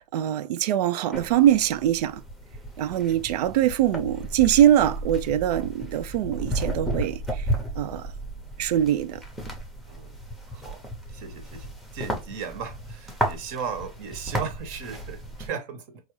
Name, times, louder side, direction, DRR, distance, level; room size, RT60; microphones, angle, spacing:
voice 1, 0.0-2.2 2.8-7.5 7.8-8.1 8.6-9.2, right 11 dB, 90° right, 0.5 m, -23 dB
sound 1, 1.1-15.5, equal, ahead, 0.7 m, -34 dB
voice 2, 10.5-10.8 11.1-16.0, right 6 dB, 55° right, 1.0 m, -36 dB
4.0 x 2.4 x 3.1 m
supercardioid pair, 140°, 20 cm